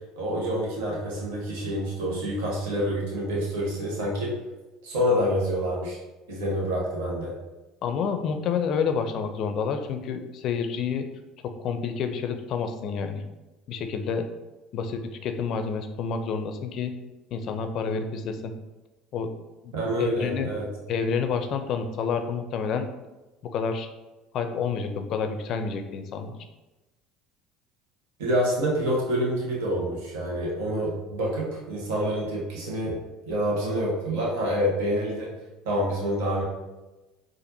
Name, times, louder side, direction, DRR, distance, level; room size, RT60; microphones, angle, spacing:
voice 1, 0.2-4.3 4.8-6.0 6.3-7.3 19.7-20.7 28.2-33.0 33.3-35.3 35.6-36.4, equal, 80° right, -4 dB, 1.0 m, -27 dB
voice 2, 7.8-11.0 11.6-13.2 13.7-14.3 14.7-16.9 17.3-18.5 19.1-19.3 19.6-19.7 20.0-20.5 20.9-22.9 23.5-23.9 24.3-26.4, left 6 dB, 55° left, 7 dB, 0.4 m, -29 dB
4.2 x 2.5 x 2.6 m, 1.1 s
supercardioid pair, 85°, 0 cm